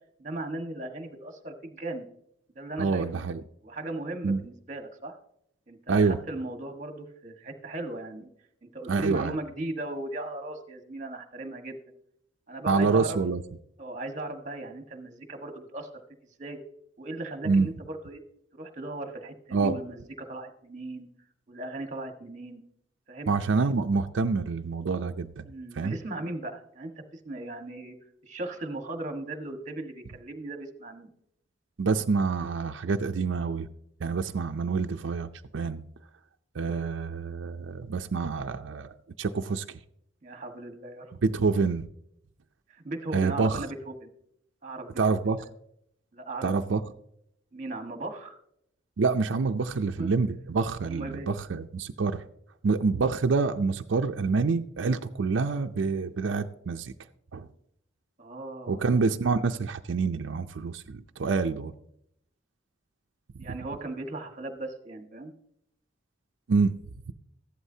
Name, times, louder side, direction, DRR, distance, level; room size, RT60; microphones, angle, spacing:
voice 1, 0.2-2.1 2.5-3.1 3.6-5.1 5.7-8.3 8.6-11.8 12.5-13.2 13.8-15.9 16.4-16.6 17.0-18.2 18.5-21.1 21.5-22.6 23.1-23.3 25.4-27.9 28.2-31.1 40.2-41.1 42.7-44.1 44.6-45.4 46.1-46.7 47.5-48.4 50.0-50.1 50.8-51.3 58.2-58.9 63.4-65.3, right 2 dB, 40° right, 1.4 m, -37 dB
voice 2, 2.8-3.4 4.2-4.4 5.9-6.2 8.9-9.4 12.7-13.4 17.5-17.7 19.5-19.8 23.3-25.4 25.8-26.0 31.8-33.7 34.0-35.8 36.5-39.8 41.2-41.9 43.1-43.6 45.0-45.4 46.4-46.8 49.0-52.2 52.6-56.9 57.3-57.5 58.7-61.7 66.5-66.7, right 4 dB, 80° right, 0.5 m, -27 dB
14.5 x 11.5 x 2.8 m
head